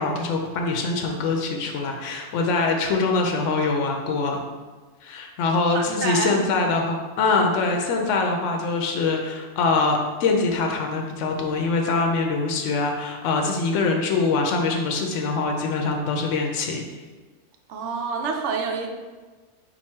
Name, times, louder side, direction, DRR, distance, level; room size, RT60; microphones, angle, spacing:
voice 1, 0.0-4.4 5.0-16.8, left 3 dB, 80° left, 2 dB, 0.9 m, -23 dB
voice 2, 5.7-6.4 17.7-18.9, right 5 dB, 75° right, 3 dB, 0.9 m, -28 dB
4.6 x 2.5 x 4.3 m, 1.3 s
omnidirectional pair, 1.2 m